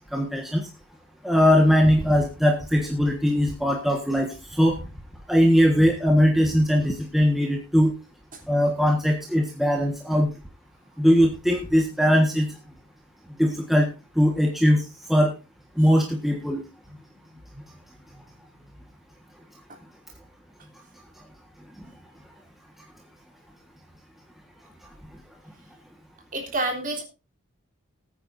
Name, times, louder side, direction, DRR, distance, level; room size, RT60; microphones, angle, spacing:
voice 1, 0.1-0.7 1.2-4.7 5.3-7.9 8.5-10.3 11.0-12.5 13.4-13.9 14.2-15.3 15.8-16.6, equal, ahead, 0 dB, 1.5 m, -20 dB
voice 2, 26.3-27.0, right 2 dB, 40° right, 1 dB, 3.4 m, -29 dB
20.0 x 9.2 x 2.7 m, 0.29 s
head